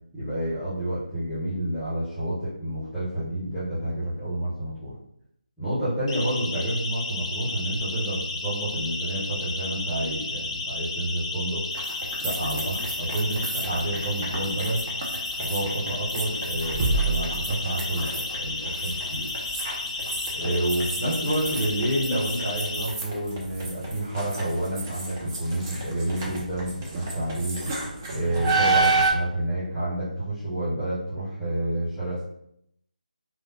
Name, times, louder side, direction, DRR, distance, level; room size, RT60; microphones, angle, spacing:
voice 1, 0.1-4.9 5.6-11.6 12.2-14.8 15.4-19.3 20.3-27.6 28.1-32.2, right 1 dB, ahead, -13 dB, 0.8 m, -29 dB
Siren, 6.1-22.8, left 3 dB, 30° left, 0.4 m, -33 dB
sound 1, 11.7-29.1, right 3 dB, 25° right, 0.6 m, -30 dB
3.2 x 2.1 x 2.7 m, 0.74 s
figure-of-eight pair, 155°, 5 cm